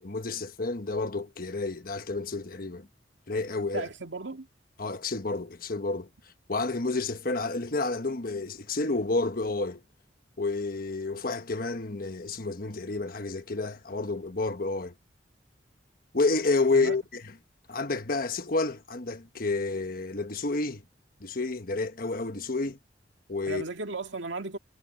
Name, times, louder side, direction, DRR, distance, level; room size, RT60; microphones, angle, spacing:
voice 1, 0.0-2.9 3.3-3.9 4.8-6.1 6.5-9.8 10.4-14.9 16.1-17.2 17.7-20.8 21.2-22.8 23.3-23.6, left 3 dB, 50° left, 1.3 m, -30 dB
voice 2, 3.7-4.5 16.7-17.0 23.5-24.6, right 3 dB, 80° right, 2.0 m, -35 dB
head